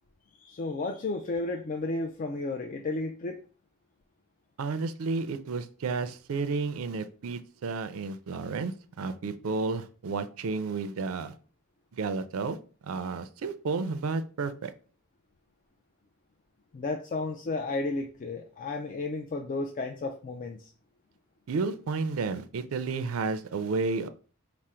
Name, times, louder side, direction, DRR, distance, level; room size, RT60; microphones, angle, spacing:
voice 1, 0.4-3.4 16.7-20.7, left 3 dB, 40° left, 0.3 m, -33 dB
voice 2, 4.6-11.3 11.9-12.6 12.8-14.7 21.5-24.1, right 4 dB, 75° right, 0.4 m, -32 dB
4.9 x 2.0 x 4.2 m
head